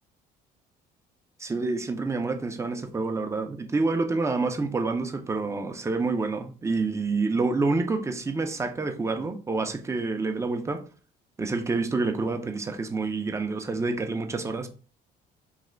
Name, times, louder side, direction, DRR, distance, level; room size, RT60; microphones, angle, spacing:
voice 1, 1.4-10.8 11.4-14.7, right 3 dB, 15° right, 0.5 m, -28 dB
3.3 x 2.8 x 3.8 m
cardioid pair, 110°, 17 cm